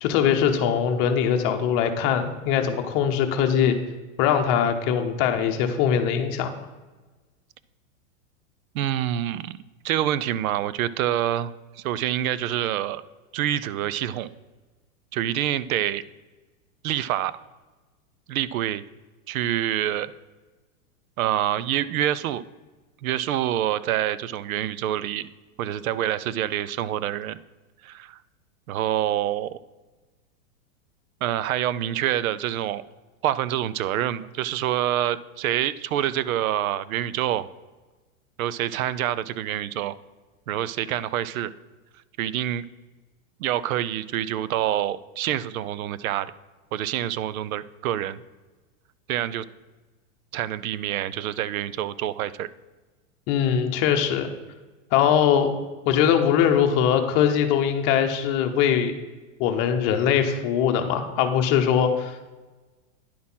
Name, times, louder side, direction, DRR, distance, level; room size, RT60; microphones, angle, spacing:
voice 1, 0.0-3.8 4.2-6.5 53.3-54.3 54.9-55.5 55.9-58.9 59.4-62.1, left 8 dB, 30° left, 5 dB, 0.8 m, -21 dB
voice 2, 8.7-9.6 9.8-13.0 13.3-14.3 15.1-16.0 16.8-17.3 18.3-18.8 19.3-20.1 21.2-22.4 23.0-25.3 25.6-27.4 27.8-28.2 28.7-29.6 31.2-32.8 33.2-37.5 38.4-39.9 40.5-41.5 42.2-42.6 43.4-46.3 46.7-48.2 49.1-49.5 50.3-52.5, right 12 dB, 80° right, 18 dB, 0.6 m, -26 dB
10.0 x 4.3 x 5.5 m, 1.2 s
supercardioid pair, 155°, 41 cm